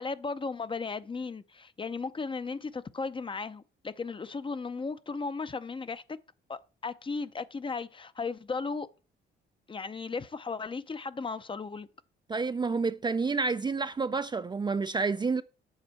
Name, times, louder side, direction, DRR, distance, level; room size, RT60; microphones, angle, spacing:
voice 1, 0.0-6.0 6.5-8.9 9.7-11.9, left 4 dB, 25° left, 0.6 m, -36 dB
voice 2, 12.3-15.4, right 4 dB, 20° right, 0.4 m, -29 dB
8.0 x 4.3 x 6.9 m
cardioid pair, 90°, 20 cm